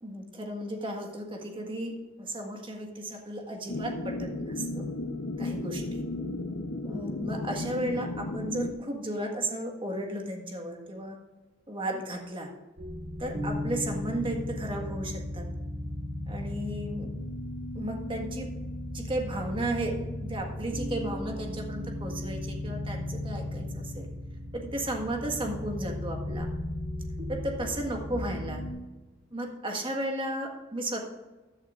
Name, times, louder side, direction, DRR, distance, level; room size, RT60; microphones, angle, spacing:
voice 1, 0.0-4.9 5.4-6.0 6.8-11.2 11.7-12.5 13.2-15.5 16.3-17.1 17.7-18.5 18.9-19.9 20.2-24.1 24.5-26.5 27.3-28.6 29.3-31.1, right 1 dB, 25° right, 2 dB, 1.6 m, -34 dB
sound 1, 3.7-8.7, left 2 dB, 70° left, 0.9 m, -34 dB
sound 2, 12.8-28.7, left 1 dB, 55° right, 2.3 m, -36 dB
15.5 x 10.5 x 2.5 m, 1.2 s
head